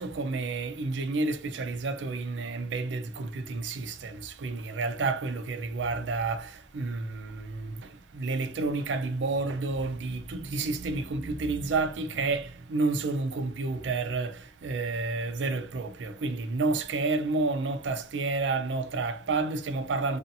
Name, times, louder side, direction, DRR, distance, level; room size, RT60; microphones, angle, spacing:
voice 1, 0.0-20.2, right 3 dB, 85° right, 0.4 m, -30 dB
2.6 x 2.4 x 2.6 m
head